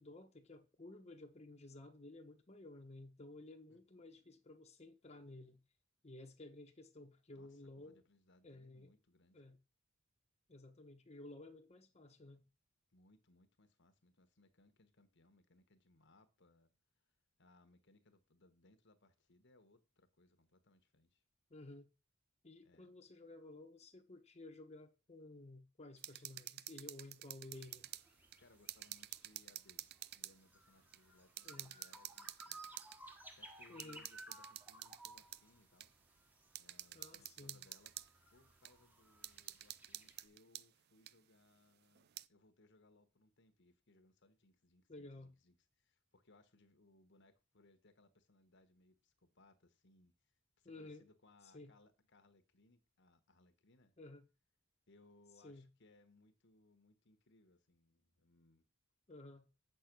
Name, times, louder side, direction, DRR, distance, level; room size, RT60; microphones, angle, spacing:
voice 1, 0.0-5.6 6.0-8.0 8.4-8.9 9.3-9.6 10.5-12.4 21.5-21.9 22.4-27.9 31.4-31.7 33.7-34.1 36.9-37.6 44.9-45.3 50.6-51.0 51.5-51.7 54.0-54.3 55.4-55.7 59.1-59.5, left 2 dB, 30° left, 1.0 m, -54 dB
voice 2, 7.3-9.4 12.9-16.7 17.0-17.1 17.4-21.2 22.6-22.9 28.4-32.6 33.4-35.9 36.6-37.9 38.3-54.0 54.9-58.7, left 2 dB, 55° left, 1.2 m, -69 dB
sound 1, 26.0-28.1 28.3-30.4 30.9-31.0 31.4-33.0 33.8-35.4 35.8-35.9 36.5-38.1 38.6-38.7 39.2-40.7 41.1-41.2 41.9-42.3, right 14 dB, 50° right, 0.4 m, -50 dB
sound 2, 27.5-40.2, right 1 dB, 10° right, 1.3 m, -60 dB
7.9 x 6.6 x 6.0 m
head